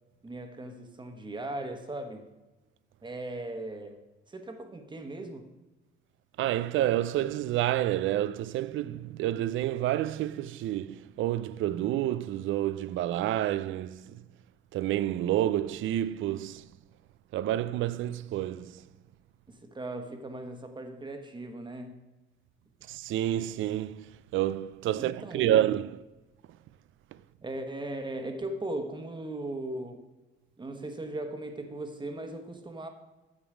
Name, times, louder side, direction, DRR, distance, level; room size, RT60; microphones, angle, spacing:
voice 1, 0.2-2.3 3.0-5.5 19.5-22.0 24.9-25.6 27.4-30.0 30.6-32.9, right 2 dB, 25° right, 1.2 m, -38 dB
voice 2, 6.4-14.2 14.7-16.7 17.3-18.8 22.9-26.0, right 13 dB, 80° right, 0.4 m, -29 dB
8.8 x 7.1 x 4.9 m
cardioid pair, 90°, 20 cm